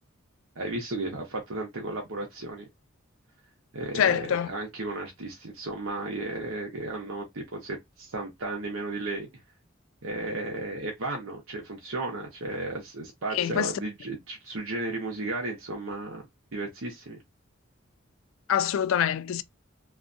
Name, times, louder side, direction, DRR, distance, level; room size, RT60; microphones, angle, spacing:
voice 1, 0.6-2.6 3.7-9.3 10.0-16.2 16.5-17.2, right 2 dB, 75° right, 0.9 m, -34 dB
voice 2, 4.0-4.5 13.3-13.7 18.5-19.4, left 9 dB, 70° left, 0.3 m, -25 dB
2.5 x 2.3 x 2.5 m
head